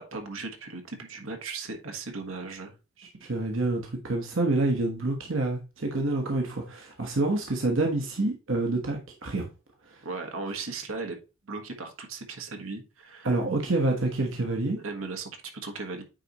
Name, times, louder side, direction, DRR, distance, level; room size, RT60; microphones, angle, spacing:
voice 1, 0.0-2.7 10.0-11.2 11.4-13.3 14.8-16.0, right 3 dB, 85° right, 1.4 m, -37 dB
voice 2, 3.0-9.5 9.9-10.0 13.2-14.8, right 2 dB, 65° right, 1.2 m, -27 dB
9.0 x 4.2 x 3.0 m
head